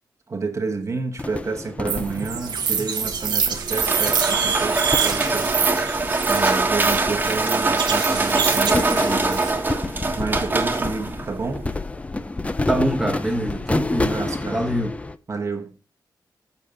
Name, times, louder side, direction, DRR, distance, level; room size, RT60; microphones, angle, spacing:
voice 1, 0.3-5.5 6.3-9.5 10.2-11.7 14.0-14.6 15.3-15.8, right 4 dB, 45° right, 1.1 m, -30 dB
sound 1, 1.2-3.5 4.1-6.6 7.0-7.9 8.2-15.2, left 2 dB, 20° left, 0.5 m, -30 dB
sound 2, 1.9-9.5, right 7 dB, 90° right, 1.1 m, -26 dB
sound 3, 3.0-11.8, right 3 dB, 25° right, 1.3 m, -23 dB
voice 2, 12.7-14.2 14.5-15.0, right 1 dB, 5° right, 1.1 m, -24 dB
6.9 x 6.7 x 3.8 m
wide cardioid pair, 105°, 7 cm